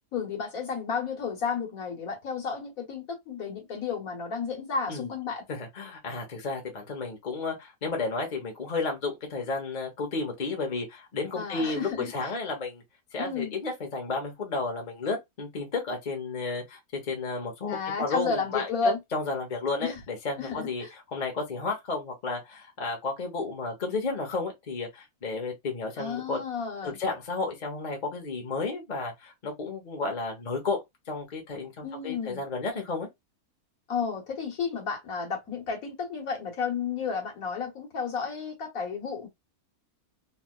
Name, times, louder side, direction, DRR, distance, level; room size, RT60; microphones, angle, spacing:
voice 1, 0.1-5.4 11.3-12.1 13.2-13.5 17.7-19.0 19.8-20.0 20.4-20.9 26.0-27.0 31.8-32.4 33.9-39.3, left 5 dB, 65° left, 1.6 m, -32 dB
voice 2, 5.5-12.8 13.1-26.4 26.8-30.8 31.1-33.1, left 3 dB, 35° left, 0.9 m, -32 dB
3.2 x 2.7 x 2.2 m
omnidirectional pair, 1.6 m